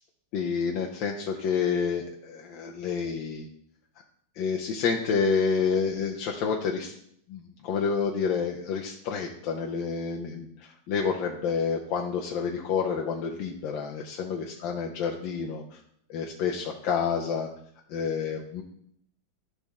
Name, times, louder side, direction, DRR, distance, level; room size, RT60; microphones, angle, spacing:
voice 1, 0.3-3.5 4.4-6.9 7.3-10.5 10.9-15.6 16.1-17.5 17.9-18.6, left 6 dB, 80° left, 0 dB, 1.5 m, -29 dB
12.0 x 4.2 x 3.5 m, 0.68 s
omnidirectional pair, 2.1 m